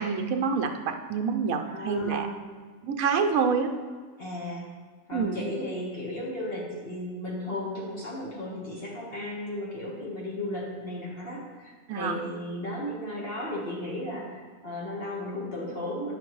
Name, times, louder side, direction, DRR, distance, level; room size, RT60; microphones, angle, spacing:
voice 1, 0.0-2.3 2.9-3.7 5.1-5.4 11.9-12.2, right 5 dB, 85° right, 5 dB, 1.1 m, -27 dB
voice 2, 1.7-2.5 4.2-4.6 5.1-16.2, left 1 dB, 45° left, -4 dB, 1.5 m, -35 dB
9.1 x 5.8 x 3.0 m, 1.5 s
omnidirectional pair, 1.5 m